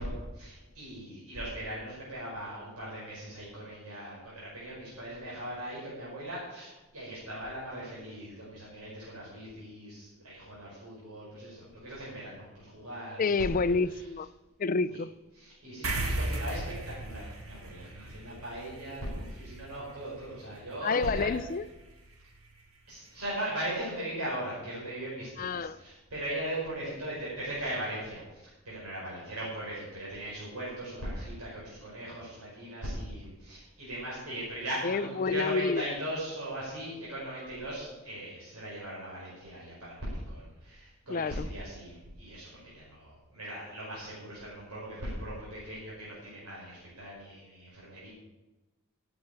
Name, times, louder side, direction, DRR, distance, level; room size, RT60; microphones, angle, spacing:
voice 1, 0.0-13.4 13.6-14.0 15.3-21.3 22.9-48.1, right 1 dB, 85° right, 5.2 m, -39 dB
voice 2, 13.2-14.3 14.6-15.1 20.8-21.6 25.4-25.8 34.8-35.9 41.1-41.5, left 4 dB, 35° left, 0.4 m, -29 dB
sound 1, 15.8-22.6, right 2 dB, 65° right, 2.1 m, -38 dB
11.0 x 8.0 x 9.1 m
head